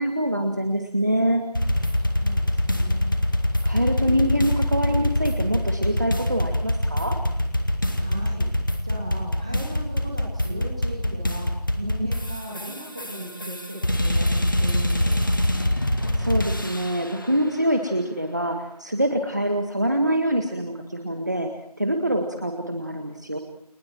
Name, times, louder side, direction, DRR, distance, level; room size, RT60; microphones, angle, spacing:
voice 1, 0.0-1.4 3.6-7.2 16.1-21.5 21.8-23.4, right 1 dB, 25° right, 4 dB, 1.8 m, -25 dB
sound 1, 1.5-17.1, left 1 dB, 30° left, 2.2 m, -24 dB
voice 2, 1.9-3.1 8.0-8.5 8.8-11.5 11.8-15.3, right 1 dB, 10° right, -2 dB, 2.8 m, -37 dB
30.0 x 29.0 x 4.6 m, 0.66 s
figure-of-eight pair, 180°, 20 cm